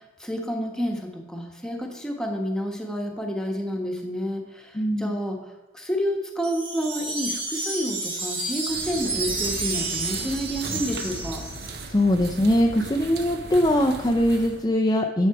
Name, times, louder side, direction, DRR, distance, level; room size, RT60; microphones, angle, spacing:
voice 1, 0.0-11.4, equal, 5° left, 2 dB, 1.2 m, -30 dB
voice 2, 4.7-5.1 11.9-15.3, left 1 dB, 20° left, 1 dB, 0.5 m, -21 dB
Wind chime, 6.4-11.8, right 3 dB, 30° right, 1.6 m, -30 dB
sound 1, 8.7-14.6, right 2 dB, 55° right, 0.9 m, -37 dB
11.0 x 7.2 x 4.8 m, 1.1 s
head